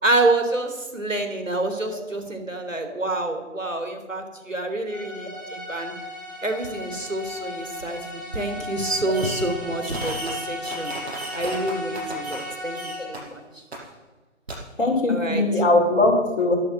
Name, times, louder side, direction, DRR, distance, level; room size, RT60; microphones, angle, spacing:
voice 1, 0.0-5.9 6.4-8.0 8.3-10.9 11.3-12.8 13.1-13.6 15.1-15.6, right 2 dB, 80° right, 5 dB, 3.7 m, -27 dB
sound 1, 4.9-13.3, left 2 dB, 15° left, 5.3 m, -36 dB
Fireworks, 9.1-9.6 9.8-12.5 12.7-13.2 13.7-13.8 14.5-14.6, right 2 dB, 55° right, 5.8 m, -35 dB
voice 2, 14.8-16.6, left 2 dB, 45° left, -2 dB, 4.8 m, -20 dB
13.0 x 11.5 x 7.3 m, 1.2 s
figure-of-eight pair, 155°, 38 cm